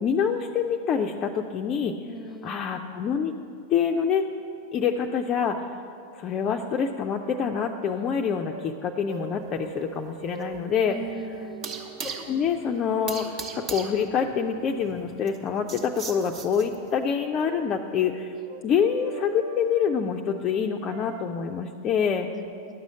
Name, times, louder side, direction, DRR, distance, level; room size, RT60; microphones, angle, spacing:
voice 1, 0.0-1.9 2.4-3.3 3.7-4.3 4.7-5.7 6.1-11.0 12.3-18.3 18.6-22.3, left 7 dB, 30° left, 4 dB, 0.4 m, -26 dB
voice 2, 2.0-2.6 10.9-11.8 22.3-22.7, right 2 dB, 5° left, 7 dB, 0.8 m, -39 dB
sound 1, 7.2-7.7 8.4-8.8 9.1-12.2 12.8-14.8 15.5-20.0 20.9-21.2, right 7 dB, 55° right, 0.5 m, -43 dB
sound 2, 9.1-17.0, right 5 dB, 35° right, 0.9 m, -40 dB
10.5 x 6.2 x 7.4 m, 2.4 s
figure-of-eight pair, 90°, 0 cm